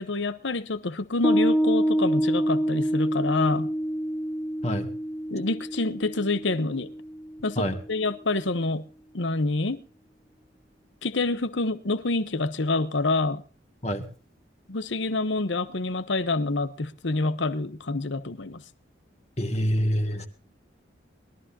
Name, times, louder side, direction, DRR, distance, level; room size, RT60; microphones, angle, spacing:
voice 1, 0.0-3.7 5.3-6.9 7.4-8.8 9.1-9.8 11.0-13.4 14.7-18.6, left 2 dB, 75° left, 1.0 m, -27 dB
Piano, 1.2-8.0, equal, 5° left, 0.9 m, -27 dB
voice 2, 19.4-20.3, equal, 35° left, 2.0 m, -26 dB
22.0 x 13.5 x 2.8 m
head